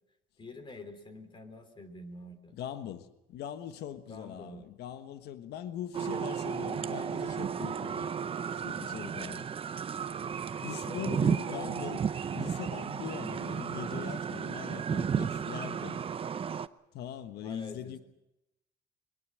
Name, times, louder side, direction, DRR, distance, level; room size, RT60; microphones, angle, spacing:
voice 1, 0.4-2.6 4.1-4.7 7.3-7.6 10.7-11.7 17.4-18.0, left 2 dB, 30° left, 3.5 m, -46 dB
voice 2, 2.5-8.1 8.6-9.5 10.6-12.0 12.3-16.0 16.9-18.0, left 10 dB, 75° left, 1.4 m, -41 dB
sound 1, 5.9-16.7, right 7 dB, 35° right, 0.7 m, -33 dB
22.0 x 20.5 x 7.6 m
cardioid pair, 110°, 17 cm